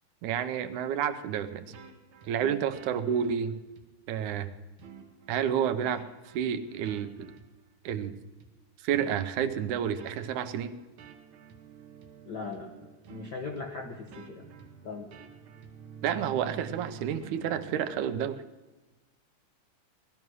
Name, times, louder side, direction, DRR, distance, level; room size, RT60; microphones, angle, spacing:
voice 1, 0.2-1.7 2.3-3.5 4.1-4.5 5.3-6.0 6.3-7.3 7.9-8.2 8.8-10.8 16.0-18.4, right 8 dB, 80° right, 10 dB, 2.2 m, -30 dB
sound 1, 1.7-3.3 3.8-3.9 4.3-4.4 4.8-5.4 5.8-7.6 7.9-8.0 8.4-8.5 8.9-9.5 10.0-17.9, right 6 dB, 60° right, 1.5 m, -49 dB
voice 2, 12.3-14.5 14.8-15.1, left 4 dB, 65° left, 3 dB, 1.0 m, -39 dB
18.5 x 12.5 x 6.2 m, 1.1 s
omnidirectional pair, 3.5 m